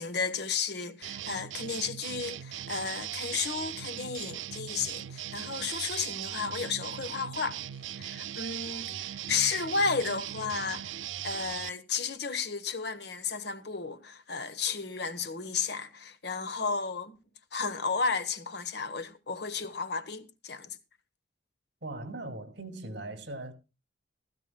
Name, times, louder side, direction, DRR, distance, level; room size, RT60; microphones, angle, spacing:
voice 1, 0.0-7.6 8.0-11.0 11.2-17.2 17.5-20.8, left 5 dB, 60° left, 1.2 m, -33 dB
sound 1, 1.0-11.7, right 11 dB, 85° right, 0.5 m, -39 dB
voice 2, 21.8-23.5, right 2 dB, 65° right, 2.3 m, -39 dB
16.0 x 14.5 x 2.3 m
head